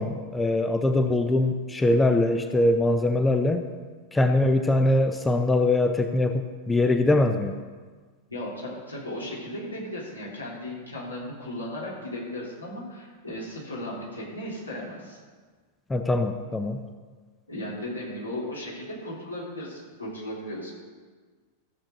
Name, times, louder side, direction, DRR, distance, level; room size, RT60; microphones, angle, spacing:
voice 1, 0.0-3.7 4.1-7.6 15.9-16.8, left 2 dB, 10° left, 7 dB, 0.5 m, -22 dB
voice 2, 8.3-15.2 17.5-20.7, left 1 dB, 80° left, -6 dB, 3.3 m, -36 dB
14.5 x 7.3 x 3.8 m, 1.5 s
figure-of-eight pair, 90°, 0 cm